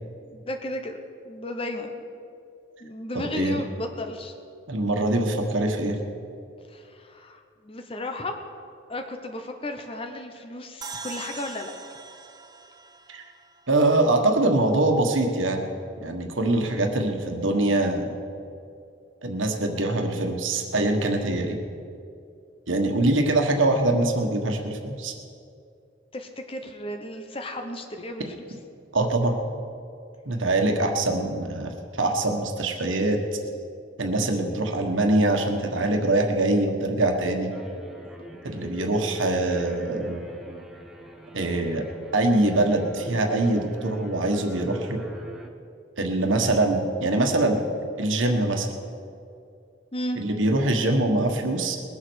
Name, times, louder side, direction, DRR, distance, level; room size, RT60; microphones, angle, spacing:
voice 1, 0.3-1.0 1.2-2.1 2.8-4.3 6.7-8.4 8.9-11.7 26.1-28.3 49.9-50.2, left 1 dB, 30° left, 4 dB, 0.9 m, -34 dB
voice 2, 3.1-3.6 4.7-6.0 13.1-13.3 13.7-15.7 16.0-18.1 19.2-21.6 22.7-25.1 28.9-29.4 30.2-33.2 34.0-37.5 38.4-40.2 41.3-41.8 42.1-45.0 46.0-47.6 48.0-48.7 50.2-51.8, right 2 dB, 85° right, 3 dB, 1.4 m, -23 dB
sound 1, 10.8-14.1, right 4 dB, 20° right, 0.7 m, -41 dB
sound 2, 37.5-45.5, equal, ahead, 1.0 m, -42 dB
21.0 x 7.5 x 6.3 m, 2.5 s
head